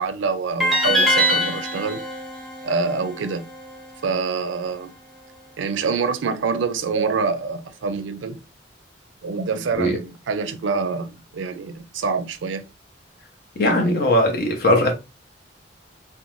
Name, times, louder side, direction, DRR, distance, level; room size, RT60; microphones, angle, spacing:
voice 1, 0.0-2.1 2.6-3.5 4.0-4.9 5.6-8.4 9.2-12.6 13.6-14.0, right 4 dB, 85° right, 0.4 m, -26 dB
sound 1, 0.6-3.7, equal, ahead, 0.9 m, -23 dB
voice 2, 13.6-14.9, left 1 dB, 55° left, 0.8 m, -19 dB
2.5 x 2.2 x 2.9 m
head